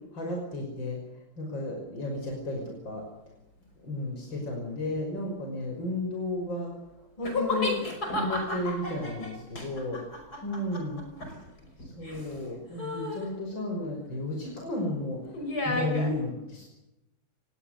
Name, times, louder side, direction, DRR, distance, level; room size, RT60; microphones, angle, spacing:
voice 1, 0.1-1.0 1.4-3.0 3.8-6.7 7.2-7.8 8.1-10.0 10.4-11.0 11.8-16.6, left 1 dB, 65° left, 1 dB, 6.5 m, -33 dB
sound 1, 7.2-12.4 12.8-13.3 15.3-16.1, left 2 dB, 50° left, 6.1 m, -33 dB
30.0 x 20.0 x 6.8 m, 0.92 s
omnidirectional pair, 2.2 m